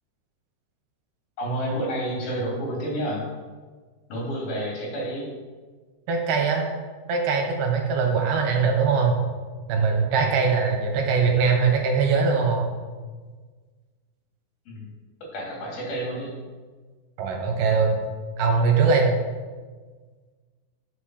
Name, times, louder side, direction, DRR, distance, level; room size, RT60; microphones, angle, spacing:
voice 1, 1.4-3.2 4.1-5.3 8.0-8.2 14.7-14.9 15.3-16.3, right 1 dB, 55° left, -4 dB, 4.8 m, -30 dB
voice 2, 6.1-6.6 7.1-9.2 9.7-12.7 17.2-18.0 18.4-19.1, right 5 dB, 65° right, 2 dB, 2.8 m, -21 dB
8.2 x 6.6 x 6.5 m, 1.5 s
omnidirectional pair, 5.2 m